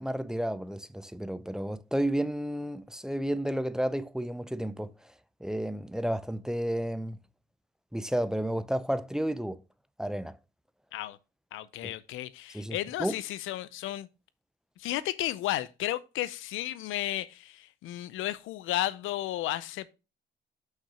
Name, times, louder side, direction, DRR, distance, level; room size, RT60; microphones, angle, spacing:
voice 1, 0.0-4.9 5.4-7.2 7.9-9.6 10.0-10.4 11.8-11.9 12.5-13.1, right 1 dB, 5° right, 0.5 m, -31 dB
voice 2, 11.5-14.1 14.8-19.9, left 14 dB, 90° left, 0.6 m, -33 dB
5.9 x 5.5 x 5.0 m
cardioid pair, 90°, 20 cm